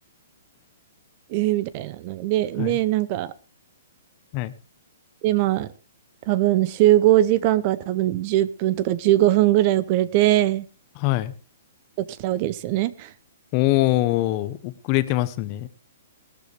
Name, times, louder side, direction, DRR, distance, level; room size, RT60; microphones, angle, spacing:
voice 1, 1.3-3.3 5.2-5.7 6.3-10.7 12.0-13.1, right 15 dB, 30° right, 17 dB, 0.7 m, -21 dB
voice 2, 11.0-11.3 13.5-15.7, left 17 dB, 25° left, 14 dB, 1.0 m, -23 dB
18.5 x 13.5 x 3.4 m, 0.32 s
hypercardioid pair, 170°, 0 cm